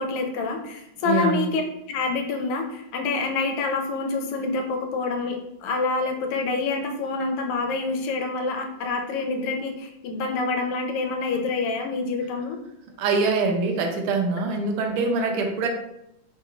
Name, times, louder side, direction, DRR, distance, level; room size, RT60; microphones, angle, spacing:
voice 1, 0.0-1.6 1.9-12.6, left 3 dB, 85° left, 3 dB, 1.5 m, -27 dB
voice 2, 1.0-1.5 13.0-15.7, right 4 dB, 80° right, 3 dB, 1.4 m, -24 dB
3.8 x 2.3 x 3.0 m, 0.82 s
omnidirectional pair, 2.4 m